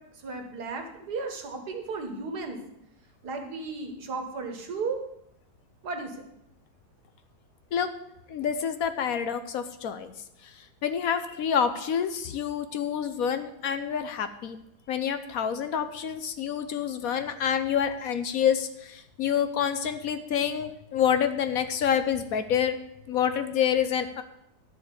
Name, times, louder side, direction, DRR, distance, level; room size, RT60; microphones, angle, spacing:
voice 1, 0.2-2.6 3.2-5.0 5.8-6.1, right 4 dB, 70° right, 5 dB, 2.1 m, -34 dB
voice 2, 8.3-10.1 10.8-14.6 14.9-22.8 23.1-24.2, left 8 dB, 65° left, 10 dB, 1.1 m, -27 dB
12.0 x 5.2 x 8.2 m, 0.81 s
omnidirectional pair, 1.8 m